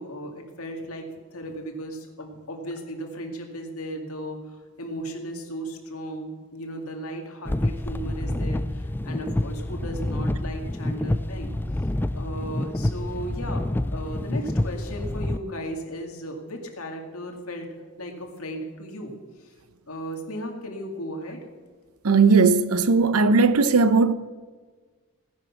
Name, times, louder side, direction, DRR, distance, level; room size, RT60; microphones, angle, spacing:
voice 1, 0.0-4.4 4.8-11.5 12.1-19.1 19.4-19.5 19.9-21.4, equal, 80° left, 2.4 m, -36 dB
sound 1, 7.5-15.4, left 1 dB, 10° left, 0.3 m, -28 dB
voice 2, 22.0-24.1, right 4 dB, 85° right, 0.7 m, -18 dB
16.5 x 10.5 x 6.0 m
head